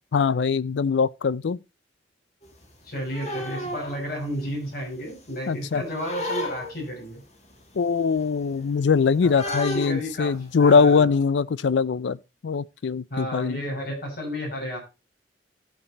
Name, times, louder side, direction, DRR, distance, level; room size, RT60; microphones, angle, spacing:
voice 1, 0.1-1.6 5.5-5.8 7.8-12.2 12.4-13.6, left 5 dB, 75° left, 0.4 m, -22 dB
sound 1, 2.4-4.8 5.1-7.0 7.5-7.6 7.9-11.0, left 1 dB, 40° left, 2.0 m, -34 dB
voice 2, 2.9-7.2 9.2-10.3 10.6-11.1 13.1-14.8, equal, 55° left, 5.2 m, -32 dB
15.0 x 5.3 x 4.1 m
head